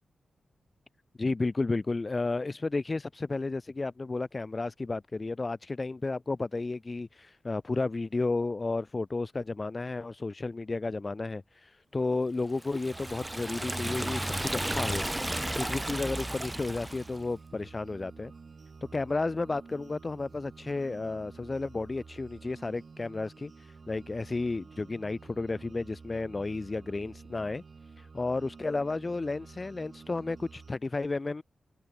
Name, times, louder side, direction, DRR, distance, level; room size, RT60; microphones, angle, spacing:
voice 1, 1.2-15.3 15.6-18.3 18.9-27.6 28.0-31.4, left 3 dB, 30° left, 0.4 m, -32 dB
Liquid, 12.6-17.2, right 1 dB, 10° right, 2.0 m, -33 dB
sound 1, 12.9-30.7, right 4 dB, 45° right, 7.5 m, -50 dB
open air
wide cardioid pair, 115°, 0 cm